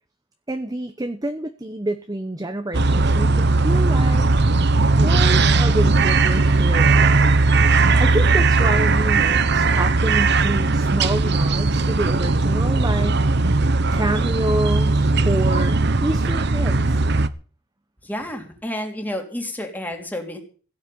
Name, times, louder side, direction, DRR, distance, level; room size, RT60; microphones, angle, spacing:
voice 1, 0.5-4.3 4.8-13.2 13.9-17.1, right 1 dB, 20° right, 8 dB, 1.0 m, -28 dB
sound 1, 2.7-17.3, right 3 dB, 55° right, 1.0 m, -18 dB
voice 2, 18.0-20.4, left 1 dB, 10° left, 3 dB, 3.1 m, -30 dB
16.5 x 6.6 x 9.4 m, 0.40 s
head